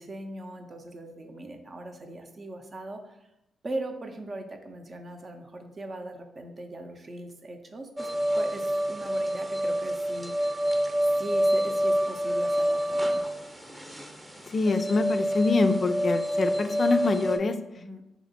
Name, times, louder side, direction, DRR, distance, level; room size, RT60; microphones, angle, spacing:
voice 1, 0.0-3.2 3.6-8.1 8.3-10.6 11.2-13.2 17.7-18.0, right 1 dB, 45° right, 5 dB, 0.6 m, -39 dB
sound 1, 8.0-17.4, equal, 15° right, 0.8 m, -27 dB
voice 2, 14.5-17.6, left 3 dB, 50° left, 8 dB, 0.3 m, -25 dB
3.2 x 2.9 x 4.0 m, 0.87 s
hypercardioid pair, 50°, 0 cm